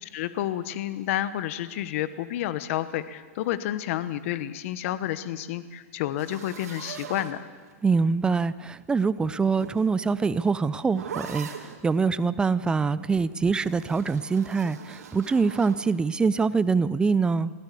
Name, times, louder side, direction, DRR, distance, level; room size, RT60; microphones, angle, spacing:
voice 1, 0.0-7.5, left 12 dB, 55° left, 13 dB, 1.1 m, -30 dB
sound 1, 6.2-7.9 9.1-11.8 13.5-15.8, right 7 dB, 90° right, 2.9 m, -41 dB
voice 2, 7.8-17.5, right 4 dB, 10° right, 17 dB, 0.5 m, -24 dB
21.5 x 16.0 x 8.5 m, 1.5 s
hypercardioid pair, 140°, 9 cm